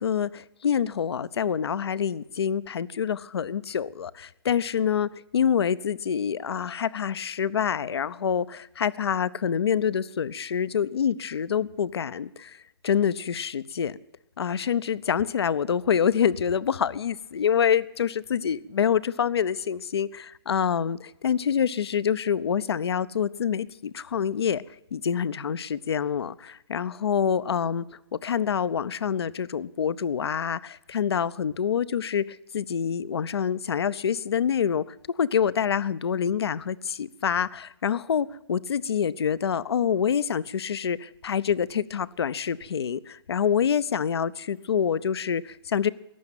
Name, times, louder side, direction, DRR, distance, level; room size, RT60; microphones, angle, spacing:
voice 1, 0.0-12.6 12.8-14.0 14.4-24.6 24.9-27.9 28.1-34.9 35.2-45.9, left 8 dB, 70° left, 0.7 m, -26 dB
15.0 x 10.5 x 9.1 m
hypercardioid pair, 135°, 14 cm